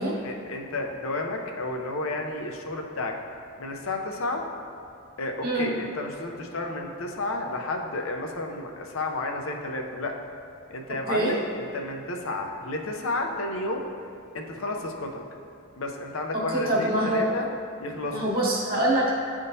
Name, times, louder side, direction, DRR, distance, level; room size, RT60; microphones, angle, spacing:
voice 1, 0.2-3.1 3.6-4.4 5.2-10.1 10.7-13.9 14.3-15.2 15.8-17.5 17.8-18.2, left 2 dB, 75° left, 2 dB, 0.6 m, -31 dB
voice 2, 16.5-17.2 18.0-19.1, right 1 dB, 45° right, -5 dB, 1.3 m, -24 dB
10.5 x 3.6 x 2.7 m, 2.4 s
head